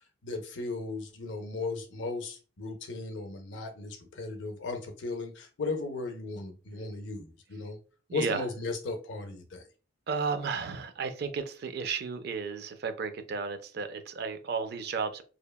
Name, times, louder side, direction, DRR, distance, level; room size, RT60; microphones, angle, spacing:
voice 1, 0.0-7.8 8.1-9.7, left 3 dB, 65° left, 0.5 m, -36 dB
voice 2, 8.1-8.4 10.1-15.2, right 5 dB, 55° right, 0.4 m, -33 dB
2.8 x 2.1 x 2.2 m
head